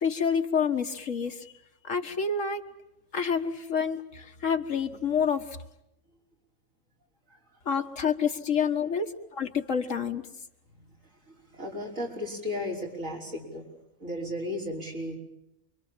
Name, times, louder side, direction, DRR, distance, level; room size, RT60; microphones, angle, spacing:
voice 1, 0.0-1.5 1.8-2.7 3.1-5.6 7.7-10.3, left 6 dB, 70° left, 6 dB, 2.0 m, -28 dB
voice 2, 11.3-13.7 14.0-15.2, left 1 dB, 75° right, -2 dB, 6.1 m, -35 dB
28.5 x 24.0 x 7.4 m, 0.85 s
omnidirectional pair, 1.4 m